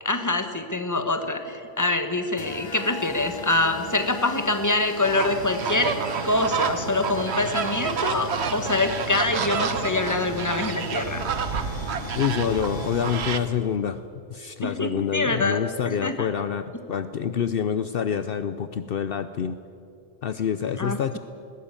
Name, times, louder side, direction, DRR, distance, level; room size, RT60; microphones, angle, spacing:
voice 1, 0.0-5.9 6.2-11.2 14.6-16.3 20.8-21.2, left 2 dB, 15° left, 6 dB, 1.5 m, -25 dB
sound 1, 2.4-13.8, left 3 dB, 35° left, 0.5 m, -39 dB
sound 2, 3.1-9.1, equal, 20° right, 7.3 m, -47 dB
sound 3, 5.0-13.4, right 6 dB, 80° right, 1.3 m, -29 dB
voice 2, 12.1-14.0 14.3-19.6 20.2-21.2, left 8 dB, 65° left, 11 dB, 0.9 m, -27 dB
20.0 x 16.5 x 9.0 m, 2.7 s
omnidirectional pair, 1.1 m